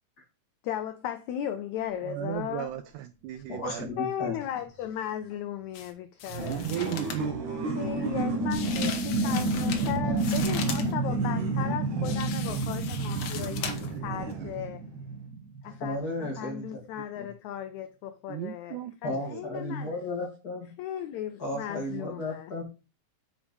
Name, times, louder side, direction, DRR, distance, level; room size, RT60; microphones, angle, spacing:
voice 1, 0.6-2.7 3.3-3.4 4.0-6.7 7.7-14.8 15.6-20.0 20.8-22.5, left 10 dB, 85° left, 1.6 m, -36 dB
sound 1, 1.9-2.0 7.2-15.9, right 2 dB, 40° right, 1.7 m, -30 dB
voice 2, 2.0-3.9 6.7-7.3 18.3-19.4, right 12 dB, 85° right, 1.8 m, -36 dB
voice 3, 3.5-4.3 10.0-10.2 13.4-13.5 15.8-16.9 17.2-17.3 19.0-20.7 21.4-22.6, left 1 dB, 35° left, 1.8 m, -34 dB
sound 2, 5.7-5.9 6.2-7.3 8.5-10.9 12.0-14.0 14.3-14.4, left 7 dB, 65° left, 1.8 m, -38 dB
Alien Conversations, 6.3-14.8, right 6 dB, 55° right, 1.5 m, -35 dB
6.4 x 5.0 x 5.3 m
omnidirectional pair, 4.0 m